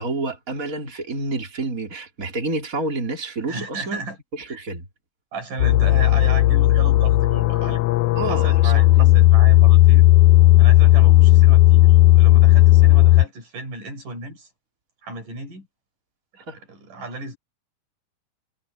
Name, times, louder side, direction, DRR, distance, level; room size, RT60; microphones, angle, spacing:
voice 1, 0.0-4.0 4.3-4.9 8.1-9.1 16.4-16.6, right 3 dB, 25° right, 4.6 m, -29 dB
voice 2, 3.5-4.2 4.5-4.6 5.3-7.8 8.3-10.1 10.6-14.5 15.0-15.7 16.5-17.4, right 3 dB, 85° right, 7.8 m, -34 dB
sound 1, 5.6-13.3, left 16 dB, 90° left, 1.3 m, -14 dB
omnidirectional pair, 3.6 m